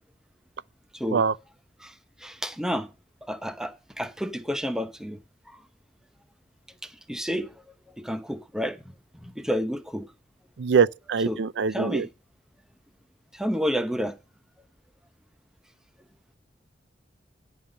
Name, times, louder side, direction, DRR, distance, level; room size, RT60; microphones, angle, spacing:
voice 1, 0.9-1.3 1.8-1.9 2.2-2.9 3.3-5.2 5.5-5.6 7.1-7.5 8.0-8.8 9.2-10.1 11.2-11.4 11.7-12.1 13.3-14.2, equal, 5° right, 0.8 m, -30 dB
voice 2, 10.6-12.1, right 6 dB, 85° right, 0.4 m, -23 dB
10.0 x 5.6 x 6.4 m
head